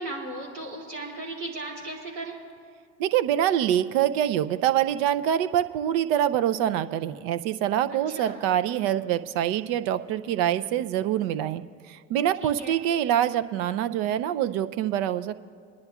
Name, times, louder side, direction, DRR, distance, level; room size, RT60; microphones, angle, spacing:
voice 1, 0.0-2.3 7.9-8.5 12.4-12.8, right 2 dB, 85° right, -3 dB, 2.7 m, -36 dB
voice 2, 3.0-11.6 11.9-15.4, right 11 dB, 60° right, 12 dB, 0.6 m, -25 dB
27.0 x 10.5 x 2.4 m, 2.1 s
hypercardioid pair, 75°, 38 cm